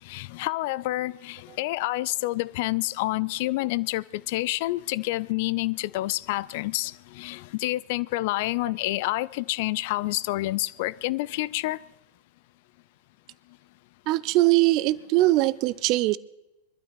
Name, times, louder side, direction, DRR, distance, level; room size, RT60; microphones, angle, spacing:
voice 1, 0.1-11.8, left 19 dB, 50° left, 0.4 m, -28 dB
voice 2, 14.1-16.2, right 18 dB, 40° right, 0.5 m, -21 dB
23.0 x 12.5 x 4.1 m
figure-of-eight pair, 90°, 0 cm